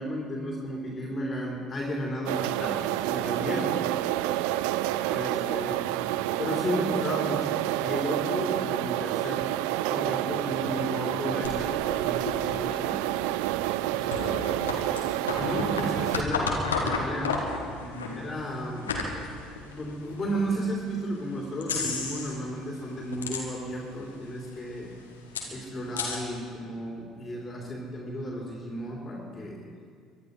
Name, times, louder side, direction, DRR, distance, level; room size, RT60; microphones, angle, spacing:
voice 1, 0.0-3.7 4.2-4.4 5.1-6.0 6.4-9.5 9.9-13.0 13.8-14.3 15.4-17.4 18.2-18.9 19.6-24.9 25.5-29.6, equal, 30° left, -2 dB, 3.5 m, -33 dB
sound 1, 2.3-16.2, right 15 dB, 60° right, 0.4 m, -29 dB
voice 2, 3.3-3.7 5.0-5.7 14.0-15.1 17.8-18.2, equal, 85° right, -6 dB, 4.2 m, -41 dB
sound 2, 11.4-20.5 21.0-21.1 21.6-22.5 22.8-23.9 24.2-24.3 24.4-26.2, left 4 dB, 80° left, 1.9 m, -33 dB
23.5 x 11.0 x 5.5 m, 2.2 s
figure-of-eight pair, 55°, 0 cm